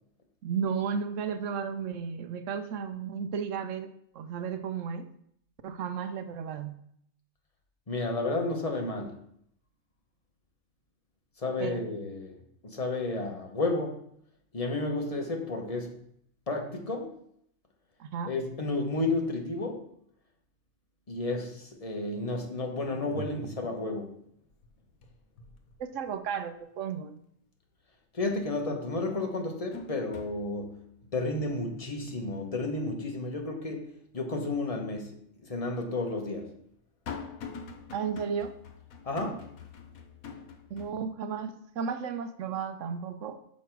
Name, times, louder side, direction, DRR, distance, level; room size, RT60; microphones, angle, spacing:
voice 1, 0.4-3.9 4.1-5.1 5.6-6.8 11.6-11.8 18.0-18.3 23.1-23.3 25.8-27.2 37.9-38.5 40.7-43.4, right 6 dB, 70° right, 9 dB, 0.9 m, -34 dB
voice 2, 7.9-9.2 11.4-12.3 12.6-14.0 14.5-15.9 16.5-17.2 18.2-19.9 21.1-24.2 28.1-30.8 31.1-36.5 39.0-39.5, left 2 dB, 30° left, 2 dB, 1.1 m, -32 dB
sound 1, 22.7-22.8 23.2-24.0 24.2-26.5 26.9-27.0 28.4-28.5 29.0-34.2 34.6-34.7 35.6-40.9, left 5 dB, 85° left, 1.3 m, -46 dB
6.5 x 5.2 x 4.6 m, 0.69 s
omnidirectional pair, 1.4 m